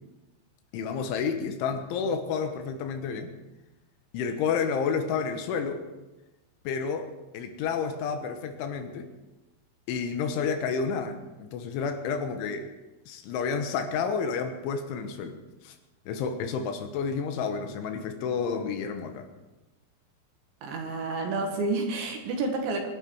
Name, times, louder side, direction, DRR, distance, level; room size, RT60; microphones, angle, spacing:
voice 1, 0.7-3.3 4.1-5.9 6.7-9.1 9.9-12.7 13.1-15.4 15.6-15.8 16.1-19.3, left 6 dB, 75° left, 7 dB, 3.6 m, -30 dB
voice 2, 20.6-22.9, right 3 dB, 70° right, 3 dB, 4.1 m, -29 dB
24.5 x 11.5 x 4.8 m, 1.1 s
omnidirectional pair, 5.6 m